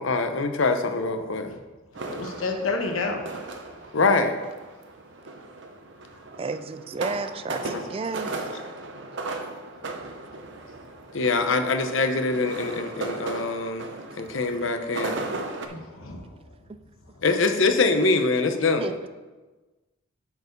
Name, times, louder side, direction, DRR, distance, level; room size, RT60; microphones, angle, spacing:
voice 1, 0.0-1.5 3.9-4.4 7.7-7.8 11.1-13.9 14.2-15.2 17.2-18.9, left 3 dB, 70° left, 8 dB, 0.7 m, -24 dB
sound 1, 1.9-15.7, right 2 dB, 60° right, 0.7 m, -36 dB
voice 2, 2.1-3.4 15.7-16.3, left 3 dB, 90° left, 4 dB, 1.1 m, -30 dB
voice 3, 6.4-8.3 18.6-19.0, right 4 dB, 25° right, 11 dB, 0.3 m, -32 dB
8.1 x 4.7 x 5.2 m, 1.2 s
head